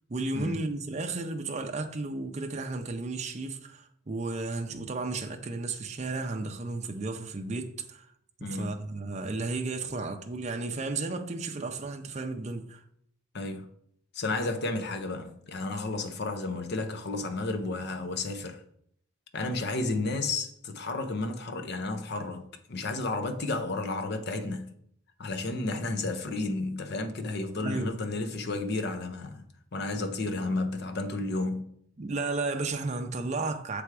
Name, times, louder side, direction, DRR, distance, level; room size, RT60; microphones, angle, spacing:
voice 1, 0.1-8.1 8.4-12.8 27.6-27.9 32.0-33.8, right 3 dB, 35° right, 0.5 m, -33 dB
voice 2, 8.4-8.7 13.3-13.7 14.1-18.6 19.3-24.7 25.2-29.4 29.7-31.7, left 2 dB, 50° left, 0.6 m, -32 dB
6.9 x 3.4 x 4.7 m
head